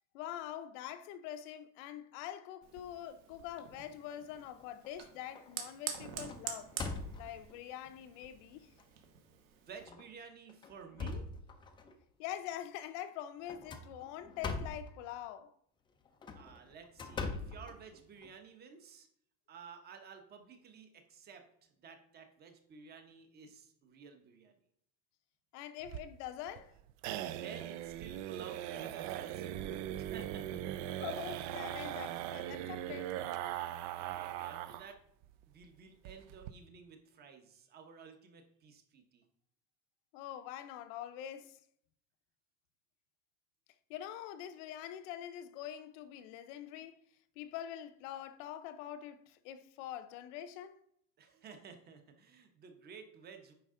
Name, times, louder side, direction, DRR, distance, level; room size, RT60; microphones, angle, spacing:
voice 1, 0.1-6.7 7.2-8.7 12.2-15.5 25.5-26.7 31.0-33.2 40.1-41.6 43.9-47.0 47.4-50.8, left 11 dB, 85° left, 0.8 m, -44 dB
Fire, 2.6-9.9, right 8 dB, 85° right, 1.5 m, -47 dB
sound 1, 4.3-4.9 5.4-5.6 5.9-7.5 8.2-8.3 8.8-8.9 9.8-10.0 10.5-11.9 13.5-14.9 16.1-18.3, left 4 dB, 15° left, 0.4 m, -42 dB
voice 2, 9.3-11.3 16.3-19.1 19.5-24.6 27.3-31.0 33.9-35.0 35.5-39.2 51.2-53.5, right 6 dB, 25° right, 0.9 m, -53 dB
sound 2, 25.8-34.9 35.2-35.3 35.6-35.7 36.0-36.5, right 12 dB, 50° right, 0.5 m, -40 dB
9.2 x 5.4 x 3.7 m
cardioid pair, 170°, 36 cm